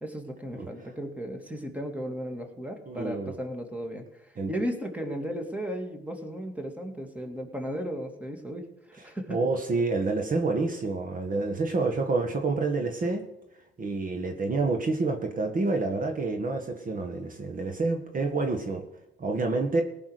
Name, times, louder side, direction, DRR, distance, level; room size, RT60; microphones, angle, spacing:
voice 1, 0.0-4.2 4.5-9.4, equal, 5° right, 4 dB, 2.5 m, -35 dB
voice 2, 2.9-3.3 4.4-4.5 9.0-13.2 13.8-18.8 19.2-19.8, right 3 dB, 45° right, 4 dB, 1.5 m, -28 dB
18.0 x 6.0 x 6.6 m, 0.89 s
cardioid pair, 90°, 20 cm